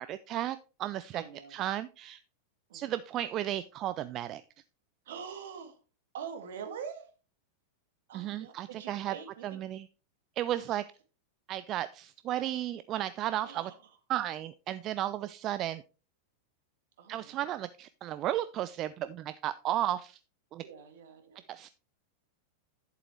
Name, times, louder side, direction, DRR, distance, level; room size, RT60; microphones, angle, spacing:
voice 1, 0.0-1.2 1.5-2.2 2.7-4.4 8.1-9.1 9.4-9.9 10.4-10.8 11.5-13.7 14.1-15.8 17.1-20.2 20.5-20.6 21.5-21.7, right 13 dB, 35° right, 14 dB, 0.4 m, -34 dB
voice 2, 1.1-1.6 2.7-3.0 5.0-5.8 6.1-7.1 8.1-9.6 13.4-14.0 17.0-17.6 20.6-21.4, right 7 dB, 55° right, 6 dB, 2.1 m, -45 dB
11.0 x 7.7 x 3.2 m, 0.35 s
figure-of-eight pair, 90°, 0 cm